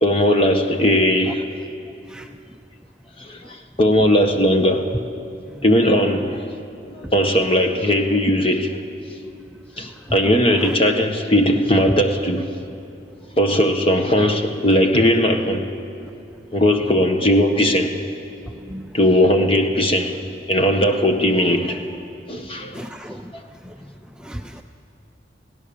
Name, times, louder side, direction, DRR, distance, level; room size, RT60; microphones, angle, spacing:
voice 1, 0.0-1.4 3.2-3.4 3.8-4.8 5.6-6.4 7.1-8.7 9.8-12.5 13.4-15.7 16.5-17.9 18.9-20.2 20.5-21.8 22.3-22.8, left 1 dB, 30° left, 4 dB, 1.5 m, -18 dB
voice 2, 18.7-19.0 22.7-23.3 23.6-23.7 24.2-24.6, right 1 dB, 5° right, 4 dB, 0.5 m, -35 dB
28.5 x 17.0 x 7.1 m, 2.6 s
head